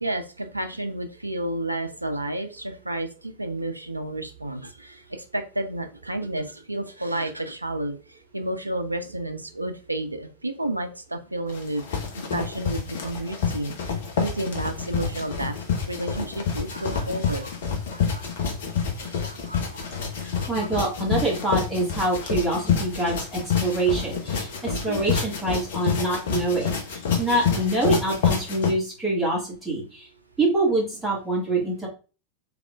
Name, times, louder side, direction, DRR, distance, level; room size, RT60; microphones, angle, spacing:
voice 1, 0.0-11.8 12.2-15.6 15.9-17.6 17.9-18.3 19.0-19.9 20.4-20.7 24.7-25.0, right 1 dB, 85° right, 7 dB, 0.4 m, -31 dB
sound 1, 11.5-28.7, left 6 dB, 55° left, 0.8 m, -28 dB
voice 2, 20.2-30.1 30.4-31.9, right 2 dB, 5° right, -6 dB, 1.9 m, -25 dB
3.5 x 3.3 x 2.3 m, 0.33 s
figure-of-eight pair, 90°, 0 cm